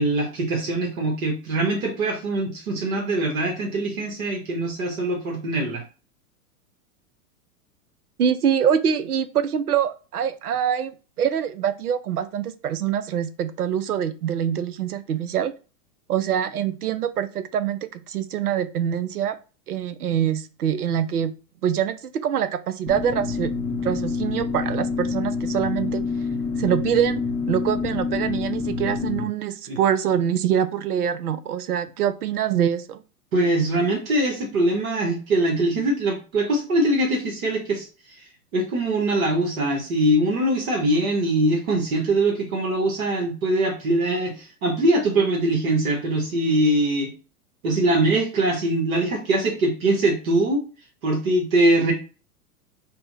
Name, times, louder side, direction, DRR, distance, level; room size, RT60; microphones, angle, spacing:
voice 1, 0.0-5.8 29.7-29.8 33.3-47.1 47.6-50.6 51.0-51.9, right 1 dB, 65° right, 1 dB, 1.3 m, -22 dB
voice 2, 8.2-10.9 11.2-15.5 16.1-19.4 19.7-21.3 21.6-23.5 23.8-26.1 26.6-33.0, right 9 dB, 80° right, 13 dB, 0.6 m, -24 dB
sound 1, 22.9-29.3, left 4 dB, 10° left, 0.4 m, -27 dB
4.2 x 2.1 x 4.0 m, 0.34 s
figure-of-eight pair, 100°, 45 cm